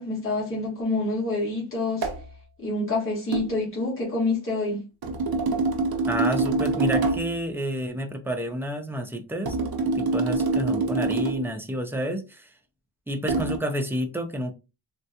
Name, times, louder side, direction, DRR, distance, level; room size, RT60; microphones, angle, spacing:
voice 1, 0.0-2.1 2.6-4.8, left 2 dB, 25° left, 1.4 m, -27 dB
sound 1, 2.0-2.3 3.3-3.5 5.0-7.4 9.5-11.5 13.3-13.6, right 3 dB, 45° right, 0.7 m, -25 dB
voice 2, 6.1-9.6 9.9-12.5 13.1-14.5, equal, 5° right, 0.4 m, -29 dB
3.5 x 2.2 x 2.7 m
wide cardioid pair, 140°, 50 cm